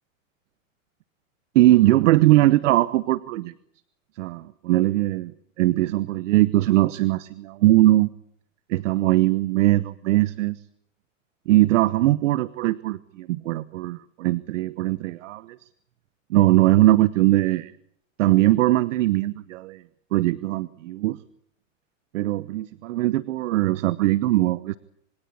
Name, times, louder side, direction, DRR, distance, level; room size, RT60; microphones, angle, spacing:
voice 1, 1.5-3.5 4.2-5.3 5.6-8.1 8.7-10.6 11.5-15.6 16.3-17.7 18.2-19.8 20.1-21.2 22.1-24.8, right 16 dB, 65° right, 17 dB, 1.1 m, -20 dB
27.0 x 23.5 x 8.5 m, 0.70 s
hypercardioid pair, 120°, 39 cm